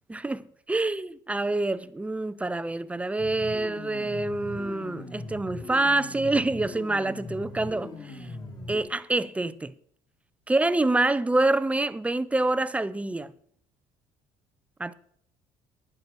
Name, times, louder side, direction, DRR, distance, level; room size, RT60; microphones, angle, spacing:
voice 1, 0.1-8.2 8.7-9.7 10.5-13.3 14.8-14.9, right 2 dB, 10° right, 0.5 m, -26 dB
sound 1, 3.2-8.8, left 2 dB, 30° left, 3.8 m, -40 dB
11.5 x 9.7 x 4.6 m
cardioid pair, 105°, 13 cm